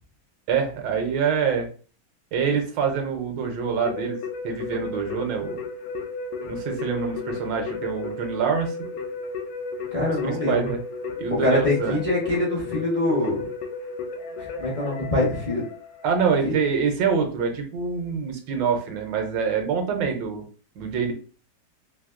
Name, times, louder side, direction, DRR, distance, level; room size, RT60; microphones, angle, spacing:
voice 1, 0.5-1.7 2.3-4.2 4.4-5.6 6.5-8.7 10.2-10.8 11.2-12.0 16.0-20.4 20.8-21.1, right 6 dB, 80° right, 4 dB, 1.4 m, -25 dB
Keyboard (musical), 3.9-16.3, left 4 dB, 85° left, 1.3 m, -34 dB
voice 2, 9.9-10.7 11.3-13.4 14.4-15.6 16.4-16.6, left 2 dB, 50° left, -4 dB, 0.4 m, -24 dB
3.4 x 2.7 x 2.3 m, 0.39 s
omnidirectional pair, 2.0 m